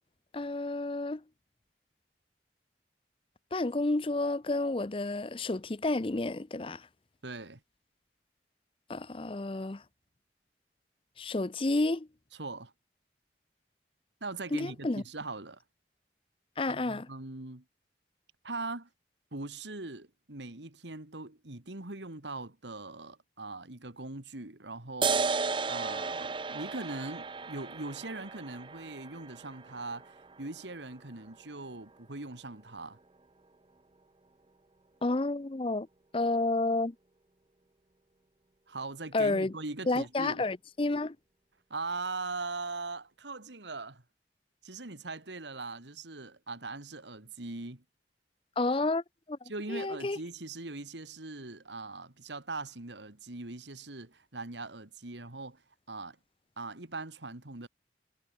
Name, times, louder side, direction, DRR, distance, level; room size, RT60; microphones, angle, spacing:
voice 1, 0.3-1.2 3.5-6.9 8.9-9.8 11.2-12.1 14.5-15.0 16.6-17.1 35.0-35.9 36.1-36.9 39.1-39.5 39.9-41.2 48.6-49.0 49.3-49.4 49.7-50.2, left 2 dB, 30° left, 0.6 m, -30 dB
voice 2, 7.2-7.6 12.3-12.7 14.2-15.6 16.6-17.6 18.4-18.9 19.3-25.4 25.7-33.0 38.7-40.4 41.7-44.0 44.6-47.8 49.5-55.6 55.9-56.2 56.6-57.7, right 3 dB, 85° right, 2.4 m, -41 dB
sound 1, 25.0-32.0, right 4 dB, 25° right, 0.6 m, -35 dB
head